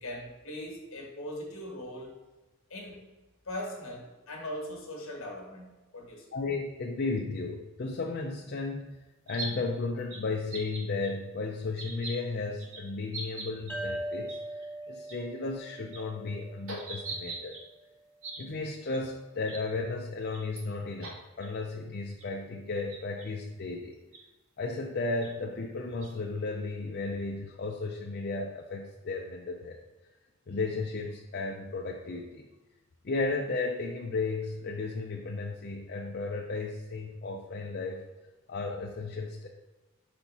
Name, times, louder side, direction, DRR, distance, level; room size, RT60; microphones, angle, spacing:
voice 1, 0.0-2.2 2.7-3.0 3.4-6.3, left 1 dB, 60° left, 1 dB, 1.5 m, -40 dB
voice 2, 6.3-9.0 9.3-17.6 18.4-24.0 24.6-29.8 30.5-32.5 33.0-38.1 38.5-39.5, left 3 dB, 45° left, 1 dB, 0.5 m, -34 dB
sound 1, 9.3-9.5 10.1-10.2 10.5-11.1 11.8-12.1 12.6-12.8 13.1-13.7 14.3-14.4 14.6-14.7 15.1-15.2 15.7-16.0 16.7-17.6 18.2-18.4 18.9-19.0 19.4-19.6 20.3-20.6 21.0-21.1 21.4-21.5 22.2-22.3 22.9-23.2 24.1-24.2 25.2-25.3 26.0-26.1, right 3 dB, 65° right, 1.2 m, -40 dB
sound 2, 13.7-17.1, right 1 dB, 10° left, 1.3 m, -40 dB
5.6 x 4.2 x 4.1 m, 1.1 s
head